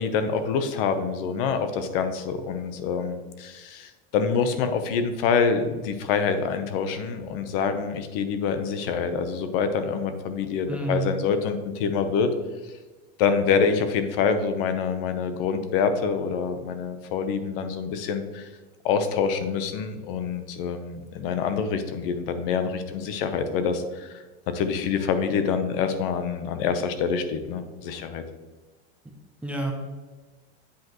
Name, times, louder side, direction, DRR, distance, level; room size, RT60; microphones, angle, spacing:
voice 1, 0.0-12.3 13.2-18.5 18.8-24.2 24.5-28.2, left 6 dB, 60° left, 9 dB, 0.9 m, -26 dB
voice 2, 10.7-11.1 29.4-29.7, right 2 dB, 5° right, 0 dB, 0.5 m, -28 dB
8.4 x 5.1 x 3.0 m, 1.3 s
supercardioid pair, 155°, 33 cm